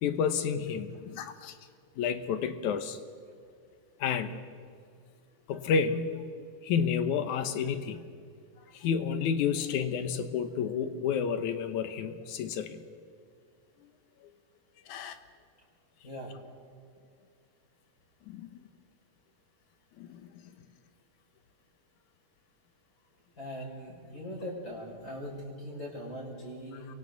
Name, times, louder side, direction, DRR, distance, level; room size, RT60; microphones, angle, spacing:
voice 1, 0.0-1.6 2.0-3.0 4.0-4.4 5.5-8.1 8.7-12.8 14.9-15.2 18.3-18.5 20.0-20.3, left 6 dB, 80° left, 9 dB, 2.5 m, -30 dB
voice 2, 16.0-16.3 23.4-26.9, equal, 25° left, -4 dB, 6.3 m, -40 dB
29.5 x 23.5 x 4.1 m, 2.3 s
omnidirectional pair, 3.4 m